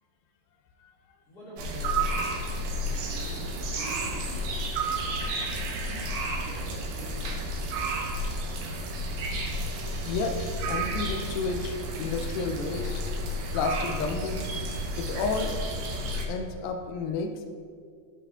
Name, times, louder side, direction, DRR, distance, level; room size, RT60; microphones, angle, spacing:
voice 1, 1.3-4.5 5.8-7.2, equal, 30° left, -9 dB, 2.2 m, -46 dB
sound 1, 1.6-16.2, right 1 dB, 80° right, 2.9 m, -31 dB
voice 2, 10.1-13.0 13.5-14.6 15.0-15.6 16.3-17.5, left 4 dB, 80° left, 5 dB, 2.3 m, -31 dB
15.5 x 5.5 x 2.4 m, 2.2 s
omnidirectional pair, 4.2 m